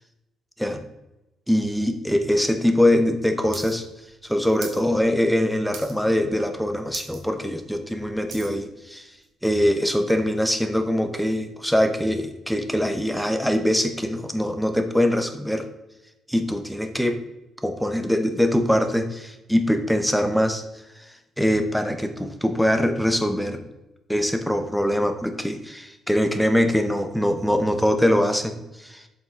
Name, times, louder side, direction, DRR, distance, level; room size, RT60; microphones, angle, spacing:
voice 1, 1.5-3.8 4.2-9.1 9.4-15.7 16.3-17.2 17.6-20.6 21.4-23.7 24.1-29.0, equal, ahead, 7 dB, 1.0 m, -23 dB
sound 1, 3.5-3.7 4.0-4.8 5.2-5.4 5.7-6.2 6.5-6.6 6.9-7.2 7.6-8.6 9.2-9.3, right 6 dB, 80° right, 1.4 m, -38 dB
7.7 x 5.3 x 3.8 m, 0.98 s
cardioid pair, 90°, 0 cm